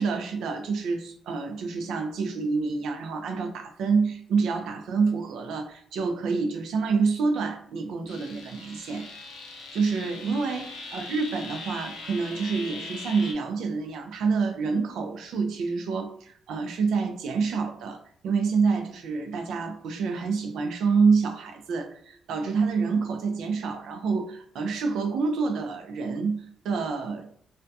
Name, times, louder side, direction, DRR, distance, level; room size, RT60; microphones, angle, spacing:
voice 1, 0.0-9.1 9.7-18.0 18.2-27.3, right 4 dB, 80° right, 6 dB, 0.4 m, -27 dB
sound 1, 8.1-13.3, left 3 dB, 85° left, 0.5 m, -41 dB
2.2 x 2.1 x 2.6 m, 0.62 s
supercardioid pair, 60°, 0 cm